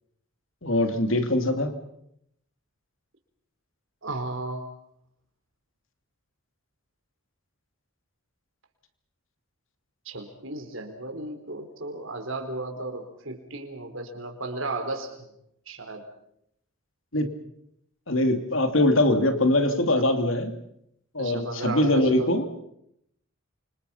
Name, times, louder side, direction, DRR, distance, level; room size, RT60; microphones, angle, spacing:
voice 1, 0.6-1.7 17.1-17.3 18.1-20.5 21.1-22.4, left 1 dB, 65° left, 7 dB, 2.9 m, -22 dB
voice 2, 4.0-4.7 10.0-15.3 15.7-16.1 21.2-22.3, right 2 dB, 65° right, 5 dB, 4.4 m, -34 dB
28.5 x 25.5 x 5.8 m, 0.75 s
head